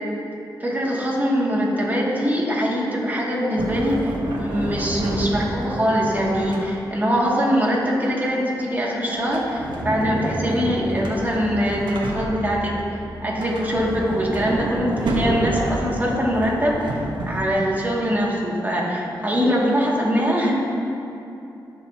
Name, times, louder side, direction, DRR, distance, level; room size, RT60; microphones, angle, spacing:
voice 1, 0.6-12.7 13.2-16.8 17.3-20.5, equal, 25° right, -5 dB, 2.5 m, -22 dB
Sliding door, 3.6-7.1 9.2-12.7 13.3-17.6, right 1 dB, 90° right, 1.3 m, -29 dB
sound 1, 9.1-14.2, equal, 5° left, 1.8 m, -38 dB
18.5 x 6.4 x 3.0 m, 2.7 s
cardioid pair, 75°, 8 cm